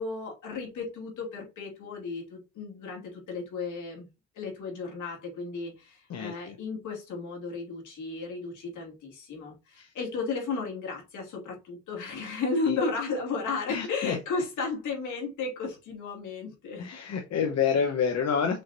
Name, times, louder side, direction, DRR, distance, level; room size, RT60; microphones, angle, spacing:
voice 1, 0.0-4.1 4.3-16.9, left 4 dB, 80° left, 0 dB, 2.6 m, -34 dB
voice 2, 6.1-6.6 9.8-9.9 12.7-12.8 13.7-14.2 16.8-18.6, left 6 dB, 60° left, 4 dB, 0.9 m, -28 dB
6.3 x 2.9 x 2.6 m, 0.26 s
cardioid pair, 90°, 30 cm